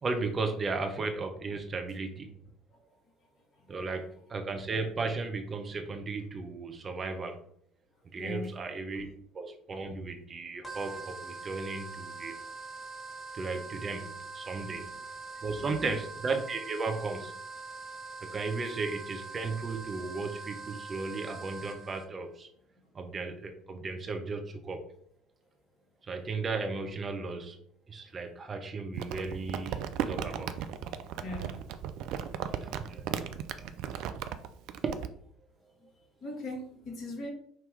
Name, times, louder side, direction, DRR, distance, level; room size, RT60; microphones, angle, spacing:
voice 1, 0.0-2.4 3.7-7.4 8.1-9.1 9.3-12.4 13.3-14.9 15.4-17.3 18.2-22.5 22.9-24.8 26.1-27.6 27.9-30.6 32.3-33.1 33.8-34.0 34.8-34.9, right 3 dB, 35° right, 5 dB, 0.8 m, -35 dB
voice 2, 8.2-8.6 13.8-13.9 14.6-14.9 15.3-15.9 18.2-18.3 22.7-22.8 31.2-31.6 32.7-32.9 33.8-34.0 36.2-37.3, left 2 dB, 45° left, 1 dB, 1.5 m, -42 dB
sound 1, 10.6-22.0, right 3 dB, 15° left, 1.1 m, -43 dB
Crumpling crinkling, 29.0-35.1, right 9 dB, 60° right, 0.4 m, -36 dB
5.2 x 2.9 x 3.2 m, 0.64 s
figure-of-eight pair, 60°, 0 cm